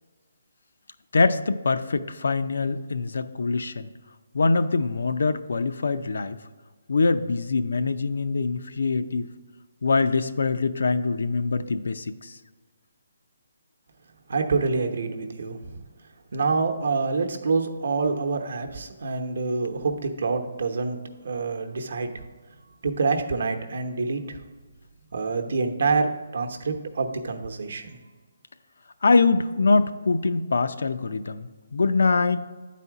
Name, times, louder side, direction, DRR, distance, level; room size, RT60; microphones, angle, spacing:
voice 1, 1.1-3.9 4.3-6.4 6.9-9.3 9.8-12.3 29.0-32.4, left 3 dB, 75° left, 10 dB, 0.5 m, -23 dB
voice 2, 14.3-15.8 16.3-21.0 21.2-22.2 22.8-24.4 25.1-28.0, right 4 dB, 60° right, 5 dB, 0.8 m, -26 dB
9.0 x 4.2 x 4.7 m, 1.4 s
hypercardioid pair, 175°, 0 cm